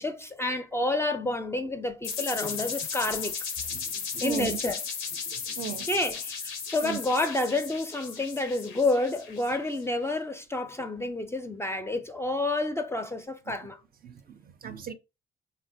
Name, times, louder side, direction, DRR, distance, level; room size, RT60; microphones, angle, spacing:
voice 1, 0.0-3.3 4.2-4.8 5.8-13.8, left 2 dB, 15° left, 0.4 m, -29 dB
sound 1, 2.0-9.8, left 6 dB, 90° left, 0.6 m, -36 dB
voice 2, 4.1-4.5 5.3-5.9 6.8-7.0 14.0-14.9, right 9 dB, 50° right, 0.4 m, -37 dB
3.0 x 2.1 x 2.6 m
cardioid pair, 90°, 20 cm